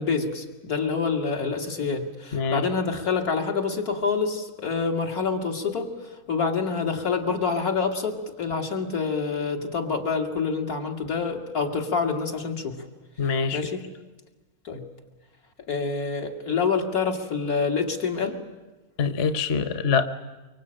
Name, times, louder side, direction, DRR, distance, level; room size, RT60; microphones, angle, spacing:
voice 1, 0.0-5.9 6.3-12.8 13.5-13.8 14.6-14.8 15.7-18.4, left 5 dB, 80° left, 2 dB, 2.8 m, -27 dB
voice 2, 2.3-2.7 13.2-13.6 19.0-20.1, left 5 dB, 50° left, 11 dB, 1.1 m, -24 dB
24.0 x 23.5 x 8.9 m, 1.2 s
omnidirectional pair, 1.5 m